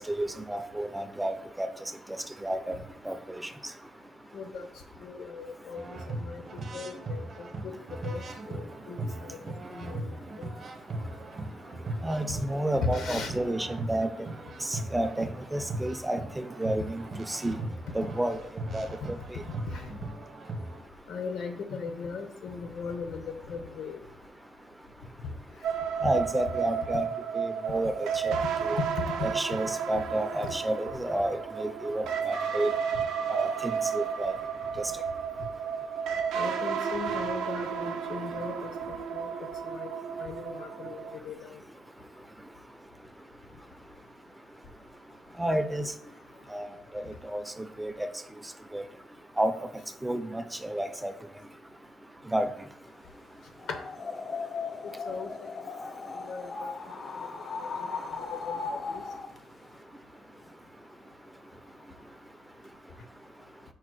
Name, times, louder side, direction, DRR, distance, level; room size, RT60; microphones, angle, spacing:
voice 1, 0.0-1.3 1.6-1.7 2.4-2.8 3.1-3.4 12.0-14.1 14.7-17.0 17.3-17.6 17.9-18.4 18.7-18.9 26.0-27.1 27.4-28.3 28.6-28.8 29.2-32.7 33.3-34.3 45.4-45.9 46.5-46.7 47.3-47.4 47.8-48.1 48.7-48.8 49.4-49.5 50.0-51.1 52.3-52.5, right 1 dB, 10° right, 9 dB, 0.3 m, -30 dB
voice 2, 4.3-4.7 5.0-7.7 8.0-8.2 8.5-9.4 9.7-10.5 12.8-13.3 19.7-19.9 21.1-23.2 23.5-24.0 26.0-26.1 30.4-30.5 36.3-38.7 39.1-39.3 39.6-39.9 40.2-41.5 55.1-55.3 56.1-56.7 57.6-59.0, left 5 dB, 75° left, 6 dB, 0.7 m, -38 dB
sound 1, 5.7-20.8, right 2 dB, 50° right, 0.7 m, -38 dB
sound 2, 25.6-41.2, right 7 dB, 85° right, 0.4 m, -32 dB
sound 3, 53.6-59.4, left 4 dB, 40° left, 0.5 m, -37 dB
4.7 x 2.1 x 4.6 m, 0.67 s
cardioid pair, 90°, 0 cm